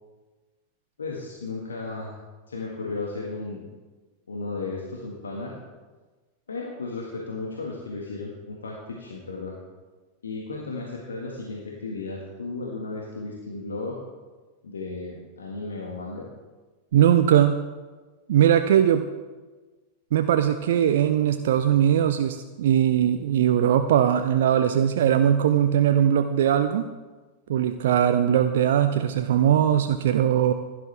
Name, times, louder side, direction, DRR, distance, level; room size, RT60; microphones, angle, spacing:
voice 1, 1.0-2.2 2.5-3.7 4.3-5.6 6.5-9.6 10.2-14.0 14.6-16.3, left 3 dB, 70° left, -2 dB, 1.7 m, -34 dB
voice 2, 16.9-17.6 18.3-19.0 20.1-26.9 27.5-30.5, right 10 dB, 60° right, 8 dB, 0.5 m, -20 dB
15.5 x 10.5 x 3.4 m, 1.3 s
figure-of-eight pair, 90°, 0 cm